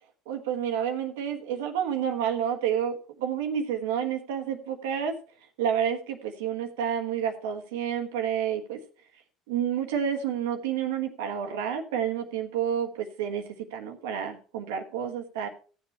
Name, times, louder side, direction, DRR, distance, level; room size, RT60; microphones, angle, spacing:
voice 1, 0.3-5.1 5.6-8.8 9.5-13.4 13.7-15.5, right 8 dB, 80° right, 5 dB, 1.4 m, -29 dB
14.5 x 7.3 x 4.3 m, 0.40 s
hypercardioid pair, 65°, 0 cm